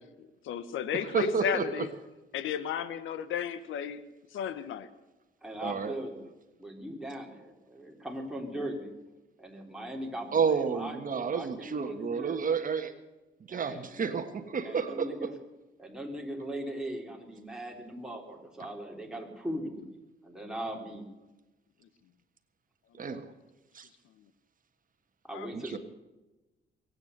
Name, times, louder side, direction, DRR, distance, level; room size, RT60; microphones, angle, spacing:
voice 1, 0.4-1.9 2.3-4.0 4.3-4.9 25.3-25.5, left 9 dB, 80° left, 14 dB, 1.0 m, -33 dB
voice 2, 1.1-1.8 5.6-5.9 10.3-12.9 13.5-15.1 23.0-23.2 23.7-23.9 25.7-25.8, right 6 dB, 45° right, 7 dB, 1.4 m, -30 dB
voice 3, 5.4-6.3 6.6-8.9 9.4-12.4 13.5-14.0 14.6-15.3 15.8-20.0 20.2-21.0 25.2-25.8, right 1 dB, 5° right, 0 dB, 3.7 m, -39 dB
22.0 x 9.3 x 6.7 m, 1.1 s
cardioid pair, 90°, 20 cm